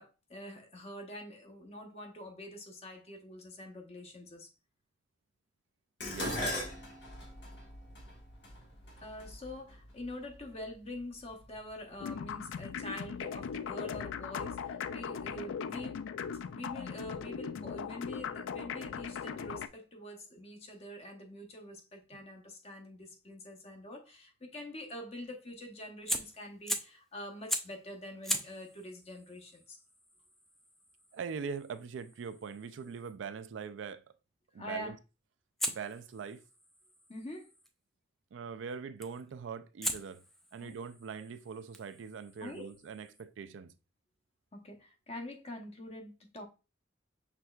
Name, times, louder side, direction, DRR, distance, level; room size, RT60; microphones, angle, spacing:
voice 1, 0.0-4.5 9.0-16.1 16.5-29.8 34.6-34.9 37.1-37.5 40.6-40.8 42.4-42.7 44.5-46.5, left 1 dB, 35° left, 0.8 m, -45 dB
Dishes pots and pans, 6.0-10.4 11.3-11.7 12.0-12.9 13.1-13.2, left 1 dB, 60° left, 1.3 m, -40 dB
voice 2, 6.0-6.4 22.1-22.2 31.1-34.0 34.5-35.0 35.7-36.4 38.3-40.2 40.5-43.7, right 6 dB, 75° right, 0.4 m, -42 dB
sound 1, 12.0-19.7, left 7 dB, 90° left, 0.3 m, -39 dB
Fire, 26.1-27.0 27.5-27.8 28.2-33.2 35.6-37.7 39.0-39.3 39.8-43.2, equal, ahead, 0.3 m, -41 dB
5.9 x 3.2 x 2.3 m
head